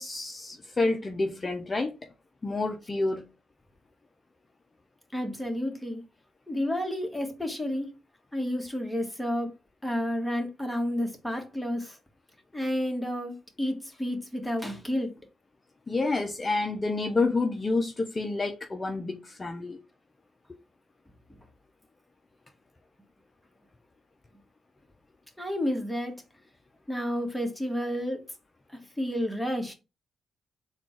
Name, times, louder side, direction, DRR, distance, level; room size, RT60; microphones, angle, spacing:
voice 1, 0.0-1.9 2.4-3.2 15.9-19.8, left 3 dB, 35° left, 0.6 m, -28 dB
voice 2, 5.1-6.0 6.5-7.9 8.3-9.5 9.8-12.0 12.5-15.1 25.4-26.2 26.9-28.2 28.7-29.7, equal, 5° left, 1.6 m, -30 dB
3.7 x 2.4 x 4.5 m
hypercardioid pair, 45°, 0 cm